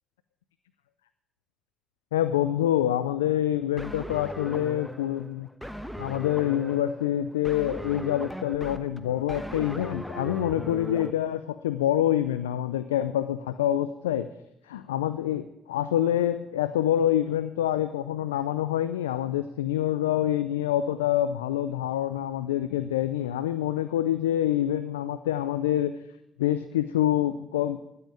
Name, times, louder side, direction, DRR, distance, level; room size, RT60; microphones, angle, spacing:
voice 1, 2.1-5.5 6.0-14.3 14.7-25.9 26.4-27.8, left 12 dB, 90° left, 12 dB, 0.4 m, -26 dB
sound 1, 3.8-11.1, equal, ahead, 1.2 m, -38 dB
12.5 x 7.8 x 9.0 m, 0.85 s
hypercardioid pair, 50°, 0 cm